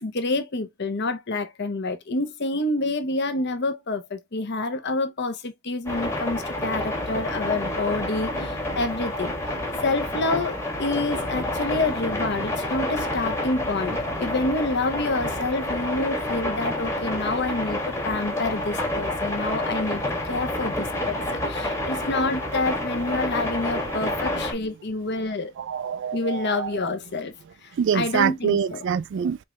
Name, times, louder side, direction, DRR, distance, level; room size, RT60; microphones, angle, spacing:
voice 1, 0.0-9.3 9.8-25.5 26.1-27.3 27.6-28.8, left 2 dB, 55° left, 0.9 m, -28 dB
sound 1, 5.9-24.5, left 1 dB, 15° left, 1.3 m, -29 dB
voice 2, 25.6-26.7 27.8-29.4, right 7 dB, 60° right, 0.3 m, -25 dB
4.5 x 3.2 x 2.3 m
head